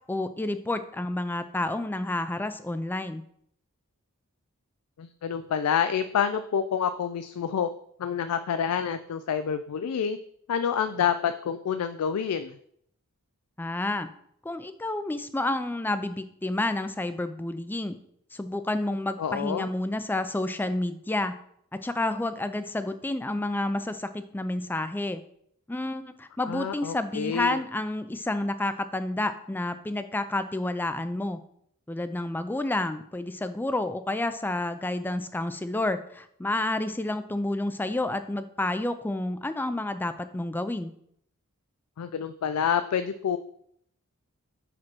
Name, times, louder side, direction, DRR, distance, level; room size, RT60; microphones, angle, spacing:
voice 1, 0.1-3.2 13.6-14.1 14.4-18.0 18.3-21.4 21.7-25.2 25.7-31.4 31.9-40.9, left 2 dB, 10° left, 11 dB, 0.3 m, -30 dB
voice 2, 5.0-7.7 8.0-10.2 10.5-12.6 19.2-19.7 26.5-27.6 42.0-43.4, left 7 dB, 90° left, 10 dB, 0.4 m, -28 dB
4.9 x 4.7 x 6.0 m, 0.68 s
head